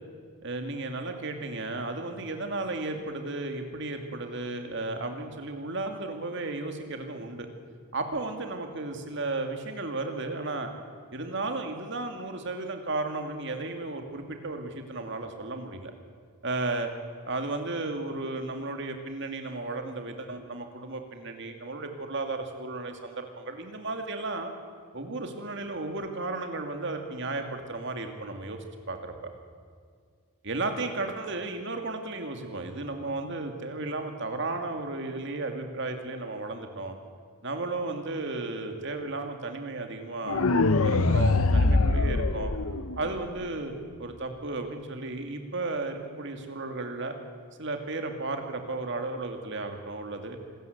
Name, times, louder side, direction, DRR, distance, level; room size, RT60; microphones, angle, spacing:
voice 1, 0.4-7.5 7.9-10.7 11.1-15.9 16.4-16.9 17.2-24.5 24.9-28.6 28.9-29.3 30.4-37.0 37.4-40.4 40.8-42.5 43.0-47.2 47.6-50.4, right 2 dB, 55° right, 5 dB, 2.4 m, -34 dB
sound 1, 40.3-43.3, left 3 dB, 75° left, 0.8 m, -23 dB
26.5 x 13.5 x 8.1 m, 2.1 s
head